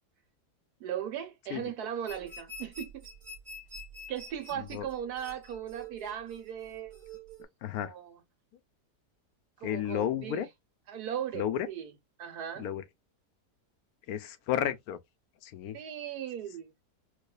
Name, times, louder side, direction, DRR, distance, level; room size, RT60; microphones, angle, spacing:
voice 1, 0.8-3.1 4.1-6.9 7.8-8.2 9.6-10.4 10.9-11.9 12.2-12.7 15.7-16.7, right 9 dB, 75° right, 1.4 m, -38 dB
sound 1, 2.1-7.4, right 1 dB, 30° right, 1.2 m, -47 dB
voice 2, 4.6-4.9 7.6-7.9 9.6-10.5 11.3-11.7 12.5-12.8 14.1-15.0 15.4-15.8, left 10 dB, 70° left, 1.1 m, -32 dB
4.6 x 2.4 x 2.2 m
omnidirectional pair, 1.7 m